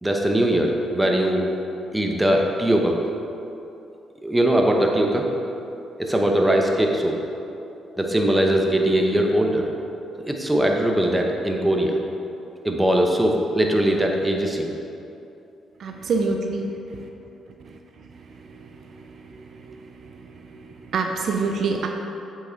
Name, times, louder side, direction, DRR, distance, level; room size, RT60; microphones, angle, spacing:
voice 1, 0.0-1.5 1.9-3.0 4.2-5.3 6.0-7.2 8.0-9.7 10.3-12.0 12.6-14.7, right 1 dB, 10° right, 1 dB, 1.0 m, -21 dB
voice 2, 15.8-16.7 18.5-18.7 19.0-19.1 20.0-20.1 20.5-21.9, right 4 dB, 65° right, 3 dB, 0.6 m, -26 dB
8.0 x 6.0 x 4.0 m, 2.8 s
supercardioid pair, 65°, 0 cm